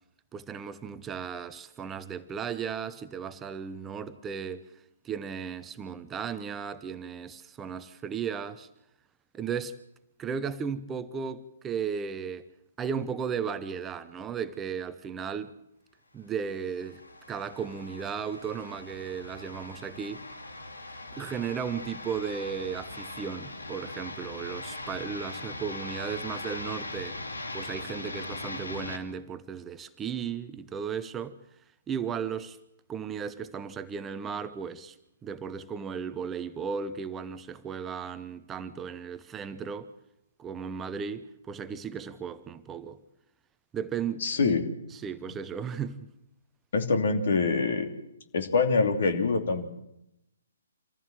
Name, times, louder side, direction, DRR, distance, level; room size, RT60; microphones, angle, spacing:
voice 1, 0.3-8.7 9.3-9.8 10.2-12.5 12.8-15.6 16.1-20.3 21.1-27.2 27.5-31.4 31.9-32.6 32.9-35.0 35.2-39.9 40.4-43.0 43.7-44.5 44.9-46.1, right 7 dB, 15° right, 0.8 m, -35 dB
sound 1, 16.4-29.0, left 2 dB, 75° left, 2.7 m, -40 dB
voice 2, 44.2-44.6 46.7-47.9 48.3-49.6, left 4 dB, 55° left, 2.9 m, -25 dB
26.5 x 15.0 x 7.6 m
figure-of-eight pair, 130°, 0 cm